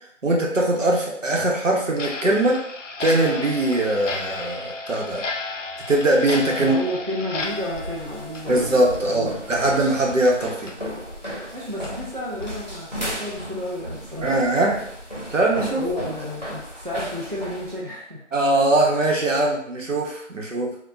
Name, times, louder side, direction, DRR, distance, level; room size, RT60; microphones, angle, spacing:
voice 1, 0.2-2.6 3.0-5.2 5.9-6.8 8.5-10.8 14.2-14.8 15.3-15.8 18.3-20.7, right 1 dB, 80° right, -2 dB, 0.9 m, -21 dB
Clock, 1.9-9.2 9.5-9.6 10.1-10.2 10.7-10.8 11.3-11.4 11.8-11.9 12.4-12.6, left 3 dB, 80° left, 0.5 m, -33 dB
voice 2, 6.6-9.4 11.5-14.3 15.8-18.2, equal, 45° right, -5 dB, 0.5 m, -31 dB
sound 1, 7.4-17.8, equal, 35° left, 0.7 m, -35 dB
2.9 x 2.2 x 2.4 m, 0.67 s
figure-of-eight pair, 175°, 37 cm